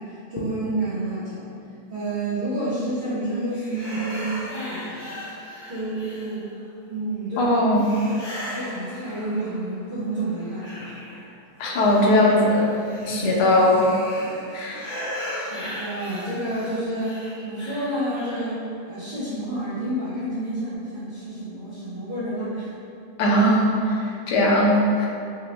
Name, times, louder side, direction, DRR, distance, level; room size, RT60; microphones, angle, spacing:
voice 1, 0.0-1.5 1.9-5.1 5.7-6.5 6.9-10.9 13.1-13.4 15.3-22.7, right 1 dB, 50° right, -15 dB, 1.7 m, -30 dB
sound 1, 3.5-6.7 7.7-9.8 10.1-18.6, left 1 dB, 30° left, 1.1 m, -37 dB
voice 2, 7.4-7.8 11.6-12.7 13.1-13.9 14.5-14.9 23.2-25.1, left 1 dB, 90° left, -3 dB, 1.2 m, -19 dB
3.5 x 2.8 x 3.0 m, 2.5 s
omnidirectional pair, 1.8 m